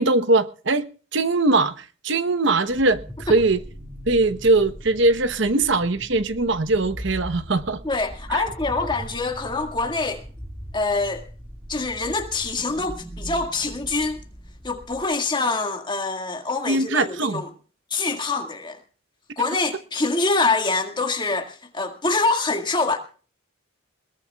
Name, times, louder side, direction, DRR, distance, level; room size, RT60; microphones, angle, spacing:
voice 1, 0.0-3.6 4.1-7.8 8.3-8.4 16.7-17.4, right 2 dB, 55° right, 1.0 m, -21 dB
sound 1, 2.7-15.1, equal, 5° right, 2.0 m, -39 dB
voice 2, 7.8-10.2 10.7-11.3 11.7-14.2 14.6-17.5 17.9-18.8 19.4-23.0, left 3 dB, 20° left, 1.9 m, -25 dB
21.5 x 20.0 x 2.3 m
head